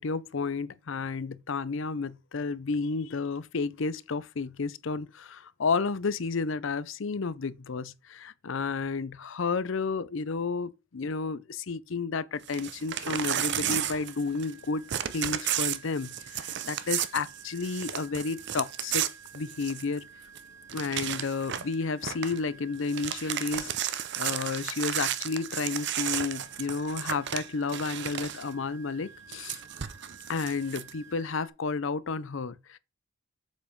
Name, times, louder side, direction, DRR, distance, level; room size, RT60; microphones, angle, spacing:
voice 1, 0.0-14.9 15.1-19.1 19.3-20.0 20.7-29.6 30.3-32.8, left 4 dB, 60° left, 0.6 m, -32 dB
sound 1, 12.4-31.5, right 5 dB, 15° right, 1.3 m, -52 dB
Crumpling crinkling / Tearing, 12.4-14.6 14.9-20.0 20.4-20.5 20.7-21.7 22.0-22.4 22.8-28.5 29.3-30.9, right 10 dB, 55° right, 0.6 m, -33 dB
7.3 x 4.9 x 5.2 m
head